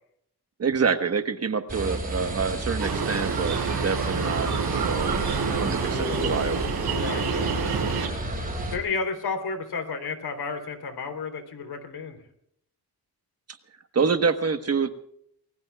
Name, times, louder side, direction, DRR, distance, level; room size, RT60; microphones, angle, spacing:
voice 1, 0.6-5.1 5.5-6.7 13.9-14.9, right 5 dB, 40° right, 8 dB, 1.3 m, -27 dB
sound 1, 1.7-8.8, right 1 dB, 20° right, 5.5 m, -31 dB
sound 2, 2.8-8.1, right 6 dB, 75° right, 5.1 m, -28 dB
voice 2, 7.0-7.6 8.7-12.2, left 4 dB, 75° left, 6 dB, 3.5 m, -32 dB
28.5 x 20.5 x 2.4 m, 0.71 s
wide cardioid pair, 155°, 38 cm